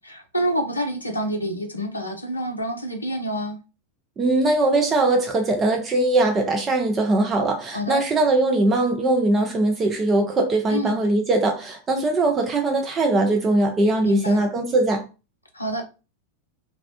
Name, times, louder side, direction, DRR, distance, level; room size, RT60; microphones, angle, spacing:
voice 1, 0.0-3.6 7.7-8.0 10.7-11.0 14.0-14.4 15.5-15.8, equal, 80° left, 0.4 m, -27 dB
voice 2, 4.2-15.1, right 2 dB, 20° right, 0.4 m, -21 dB
2.3 x 2.0 x 2.7 m
figure-of-eight pair, 90°, 0 cm